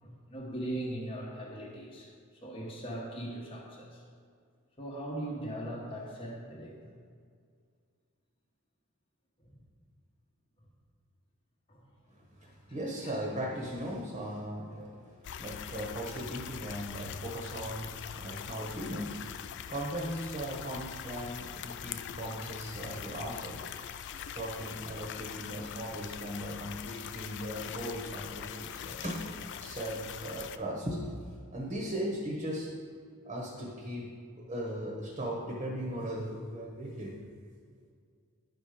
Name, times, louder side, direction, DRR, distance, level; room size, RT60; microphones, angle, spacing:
voice 1, 0.0-2.1 2.4-4.0 4.8-6.8 9.4-9.6 11.7-11.9 13.0-13.2, right 1 dB, 25° left, -3 dB, 1.1 m, -39 dB
voice 2, 12.4-19.2 19.7-23.6 24.3-29.2 29.6-31.1 31.5-32.7 33.2-34.1 34.3-37.1, equal, 30° right, -2 dB, 1.1 m, -38 dB
sound 1, 15.2-30.6, left 9 dB, 55° left, 0.3 m, -42 dB
11.0 x 4.3 x 5.0 m, 2.2 s
head